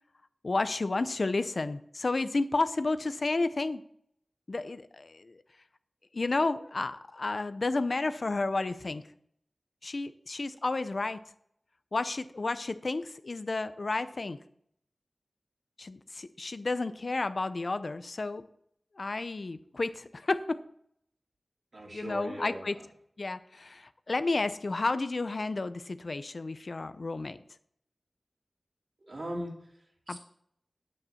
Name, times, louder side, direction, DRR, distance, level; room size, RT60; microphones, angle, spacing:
voice 1, 0.4-3.8 4.5-5.4 6.1-9.0 9.8-11.2 11.9-14.4 15.8-18.4 19.0-20.6 21.9-22.7 23.2-27.4 30.1-30.2, left 3 dB, 65° left, 12 dB, 0.7 m, -31 dB
voice 2, 21.7-22.7 29.0-30.2, equal, 65° right, -2 dB, 2.8 m, -40 dB
9.9 x 8.6 x 4.3 m, 0.68 s
wide cardioid pair, 50°, 0 cm